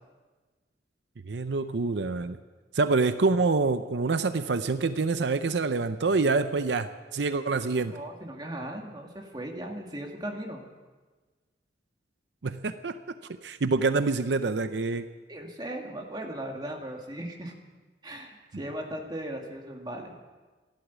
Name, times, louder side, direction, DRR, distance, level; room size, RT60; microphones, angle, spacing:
voice 1, 1.2-2.4 2.7-7.9 12.4-13.0 13.4-15.1, right 3 dB, 80° right, 11 dB, 0.6 m, -26 dB
voice 2, 7.8-10.6 15.3-17.5 18.0-20.1, right 1 dB, 25° right, 1 dB, 2.1 m, -37 dB
15.0 x 11.5 x 8.2 m, 1.3 s
head